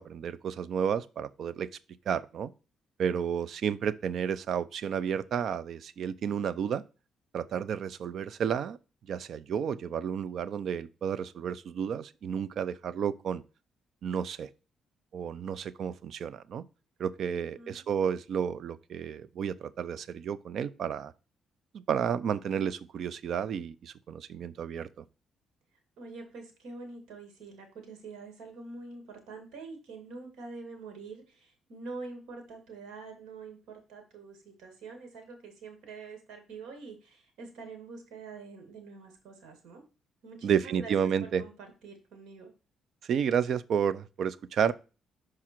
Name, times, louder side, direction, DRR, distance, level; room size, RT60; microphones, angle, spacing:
voice 1, 0.0-1.7 2.1-2.5 3.0-6.8 7.3-8.8 9.1-13.4 14.0-14.5 15.1-16.6 17.0-21.1 21.7-25.0 40.4-41.4 43.1-44.7, right 8 dB, 65° right, 0.5 m, -31 dB
voice 2, 17.3-17.8 26.0-39.8 40.2-40.9 41.2-41.5 41.8-42.5, right 4 dB, 85° right, 2.2 m, -45 dB
6.0 x 4.8 x 4.4 m
cardioid pair, 90°, 0 cm